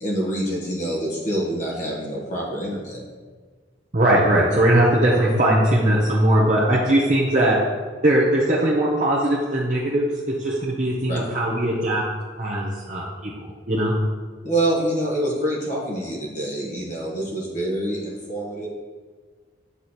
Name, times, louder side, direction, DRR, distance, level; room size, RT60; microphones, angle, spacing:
voice 1, 0.0-3.0 11.1-11.2 14.4-18.7, right 1 dB, 40° left, -4 dB, 1.2 m, -26 dB
voice 2, 3.9-7.6 8.0-12.0 12.4-13.9, right 1 dB, 40° right, -6 dB, 0.8 m, -20 dB
8.1 x 3.1 x 4.1 m, 1.5 s
head